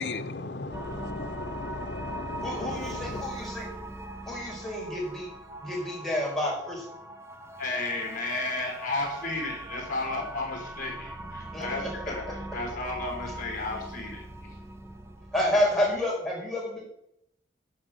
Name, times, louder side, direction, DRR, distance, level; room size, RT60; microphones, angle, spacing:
voice 1, 0.0-3.2, left 3 dB, 65° left, 0.9 m, -36 dB
sound 1, 0.7-16.0, right 1 dB, 15° right, 1.1 m, -41 dB
voice 2, 2.4-3.7 4.2-5.3 5.6-6.8 11.5-12.3 15.3-16.8, left 1 dB, ahead, 5.4 m, -29 dB
voice 3, 7.6-14.5, left 2 dB, 50° left, 4.7 m, -33 dB
11.5 x 6.4 x 8.0 m
head